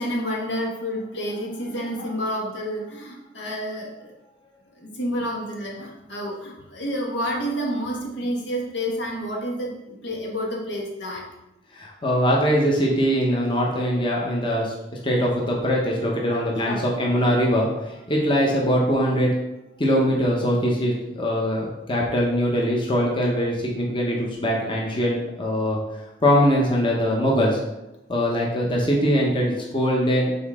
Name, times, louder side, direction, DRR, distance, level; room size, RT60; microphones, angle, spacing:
voice 1, 0.0-4.1 4.8-11.2 16.3-16.9 24.7-24.8, equal, 80° left, -2 dB, 1.5 m, -29 dB
voice 2, 11.7-14.7 15.0-19.3 19.8-25.8 26.2-27.6 28.1-30.3, equal, 30° left, -2 dB, 1.0 m, -22 dB
7.0 x 4.2 x 3.6 m, 0.95 s
head